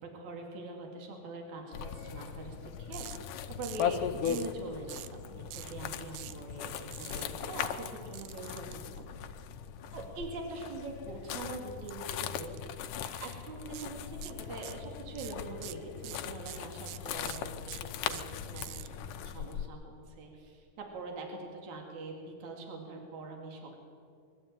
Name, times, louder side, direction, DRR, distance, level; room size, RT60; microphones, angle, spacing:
voice 1, 0.0-5.3 5.5-9.1 9.9-12.9 13.2-18.9 19.2-23.8, right 3 dB, 60° right, 1 dB, 3.9 m, -43 dB
sound 1, 1.7-19.7, left 9 dB, 75° left, 2.3 m, -39 dB
sound 2, 2.9-3.2 3.6-3.9 4.3-4.5 4.9-5.2 5.5-5.7 6.1-6.4 6.9-7.2 8.1-8.7 11.9-12.1 12.5-12.6 13.1-13.4 13.7-13.9 14.2-14.9 15.2-18.9, right 15 dB, 80° right, 1.9 m, -45 dB
22.5 x 13.0 x 9.1 m, 2.3 s
omnidirectional pair, 3.9 m